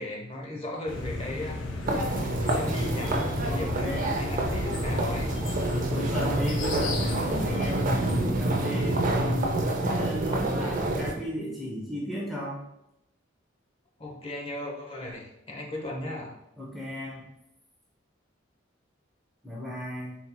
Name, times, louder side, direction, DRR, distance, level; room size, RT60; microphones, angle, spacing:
voice 1, 0.0-1.6 2.4-5.4 14.0-16.4, left 1 dB, 30° left, -1 dB, 0.8 m, -36 dB
sound 1, 0.9-8.3, left 2 dB, 65° left, 0.6 m, -34 dB
sound 2, 1.9-11.1, right 1 dB, 45° right, 0.5 m, -28 dB
voice 2, 3.4-4.2 5.6-9.5 9.8-12.6 16.6-17.3 19.4-20.2, equal, ahead, -5 dB, 0.6 m, -35 dB
4.3 x 4.1 x 2.2 m, 0.84 s
head